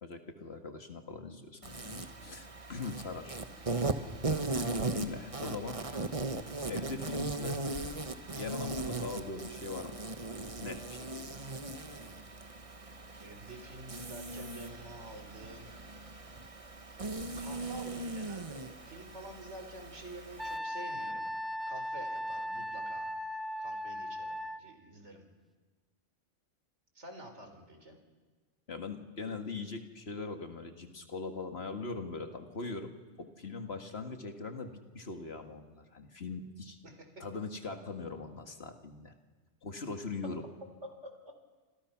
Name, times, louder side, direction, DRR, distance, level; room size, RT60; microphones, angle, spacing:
voice 1, 0.0-3.4 4.4-4.7 4.9-5.8 6.7-7.9 8.3-10.0 10.6-11.4 28.7-36.8 37.2-39.1 39.6-40.4, left 4 dB, 65° left, 5 dB, 2.2 m, -41 dB
Insect, 1.6-20.6, right 3 dB, 30° right, 1.3 m, -38 dB
voice 2, 13.2-15.7 17.4-21.3 21.7-23.1 23.6-25.2 26.9-28.0 36.8-37.2 40.8-41.1, right 1 dB, 85° right, 5 dB, 4.3 m, -48 dB
Wind instrument woodwind instrument, 20.4-24.6, equal, ahead, 0.7 m, -37 dB
29.5 x 27.5 x 6.0 m, 1.4 s
omnidirectional pair, 1.2 m